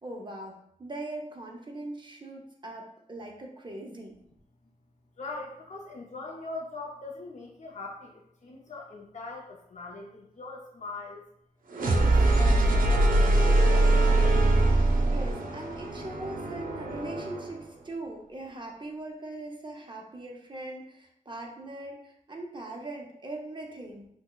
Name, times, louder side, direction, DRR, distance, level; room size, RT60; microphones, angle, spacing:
voice 1, 0.0-0.5 0.8-4.1 15.1-24.1, right 2 dB, 35° right, 0 dB, 0.6 m, -40 dB
voice 2, 5.2-11.3 11.8-14.4, left 3 dB, 55° left, -1 dB, 0.5 m, -42 dB
sound 1, 11.7-17.6, right 2 dB, 85° right, 0.5 m, -23 dB
6.0 x 2.0 x 2.2 m, 0.73 s
wide cardioid pair, 120°, 14 cm